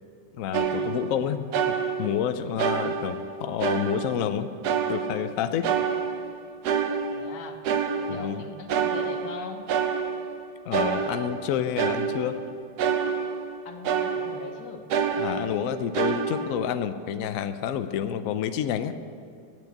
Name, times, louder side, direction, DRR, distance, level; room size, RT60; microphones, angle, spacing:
voice 1, 0.4-4.5 4.9-5.7 8.1-8.4 10.7-12.4 15.2-19.0, left 9 dB, 85° left, 10 dB, 0.7 m, -29 dB
sound 1, 0.5-1.2 1.5-2.3 2.6-4.3 4.6-5.4 5.6-8.4 8.7-10.4 10.7-13.6 13.8-14.5 14.9-16.5, right 6 dB, 65° right, 1.1 m, -28 dB
voice 2, 7.1-7.6 8.0-9.7 13.6-14.9, left 5 dB, 65° left, 6 dB, 1.4 m, -40 dB
9.1 x 8.7 x 8.1 m, 2.4 s
omnidirectional pair, 2.1 m